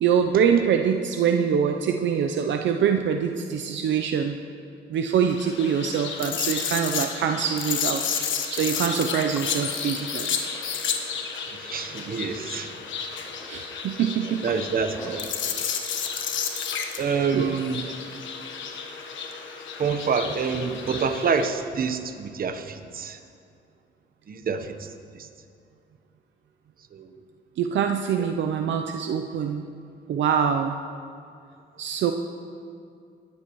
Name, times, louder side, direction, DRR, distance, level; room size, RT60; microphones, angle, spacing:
voice 1, 0.0-4.4 4.9-8.2 8.5-10.3 13.5-14.4 17.0-17.6 27.6-29.6 30.1-30.8 31.8-32.1, right 7 dB, 70° right, 5 dB, 0.7 m, -24 dB
sound 1, 5.3-21.5, left 7 dB, 70° left, 1.3 m, -32 dB
sound 2, 9.3-9.7 9.9-11.0 11.3-11.4 11.7-12.4 12.8-13.6 14.1-15.3 15.8-17.7, equal, 5° right, 2.7 m, -46 dB
voice 2, 11.6-12.7 14.2-15.3 15.6-15.7 17.0-17.9 19.8-23.2 24.3-24.9 26.9-27.1, right 5 dB, 45° right, 8 dB, 1.0 m, -27 dB
20.5 x 13.0 x 3.1 m, 2.4 s
cardioid pair, 90°, 20 cm